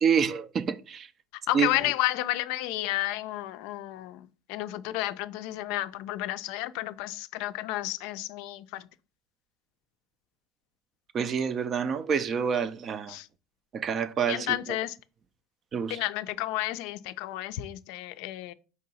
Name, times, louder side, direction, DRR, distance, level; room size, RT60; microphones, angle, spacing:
voice 1, 0.0-1.1 1.5-1.9 11.1-13.2 13.7-14.6 15.7-16.0, right 7 dB, 35° right, 0.4 m, -27 dB
voice 2, 1.5-4.2 4.5-8.8 13.1-13.3 14.3-14.9 15.9-18.5, left 16 dB, 70° left, 0.3 m, -31 dB
4.7 x 2.7 x 4.0 m
supercardioid pair, 115°, 0 cm